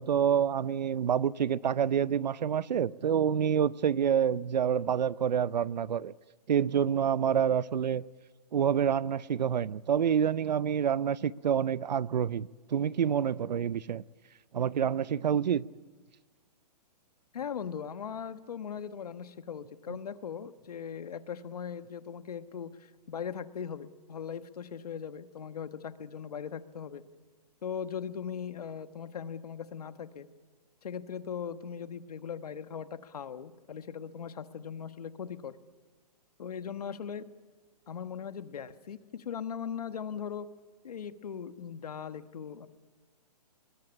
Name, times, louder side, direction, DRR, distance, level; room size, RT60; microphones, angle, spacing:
voice 1, 0.0-6.1 6.5-8.0 8.5-14.0 14.5-15.6, right 8 dB, 90° right, 0.7 m, -27 dB
voice 2, 17.3-27.0 27.6-30.3 30.8-35.6 36.4-37.2 37.9-40.5 40.8-42.7, left 7 dB, 65° left, 1.3 m, -39 dB
21.5 x 20.0 x 9.8 m
hypercardioid pair, 180°, 21 cm